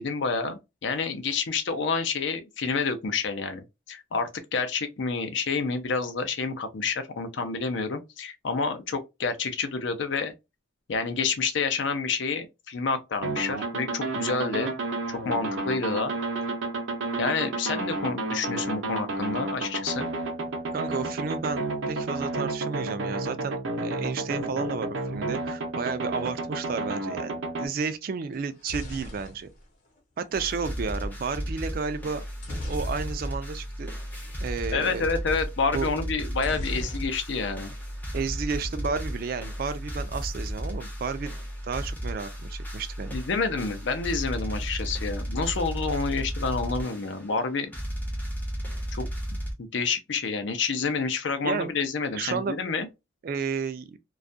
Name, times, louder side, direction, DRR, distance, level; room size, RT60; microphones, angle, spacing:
voice 1, 0.0-10.3 10.9-14.7 15.1-16.1 17.2-20.1 34.7-37.7 43.1-47.7 48.9-49.1 49.6-52.9, left 4 dB, 70° left, 0.5 m, -29 dB
sound 1, 13.2-27.7, right 2 dB, 80° right, 0.6 m, -31 dB
voice 2, 20.7-29.5 30.2-32.2 32.7-33.9 34.4-35.1 35.7-35.9 38.1-41.3 41.6-43.2 51.4-51.7 52.1-52.6 53.2-54.0, right 5 dB, 50° right, 0.3 m, -32 dB
sound 2, 28.3-30.4 32.4-33.5 33.8-34.0 34.2-34.5 36.4-37.5 37.8-38.5, left 1 dB, 40° left, 0.8 m, -38 dB
sound 3, 30.3-49.5, equal, 10° left, 0.5 m, -34 dB
2.3 x 2.1 x 2.5 m
head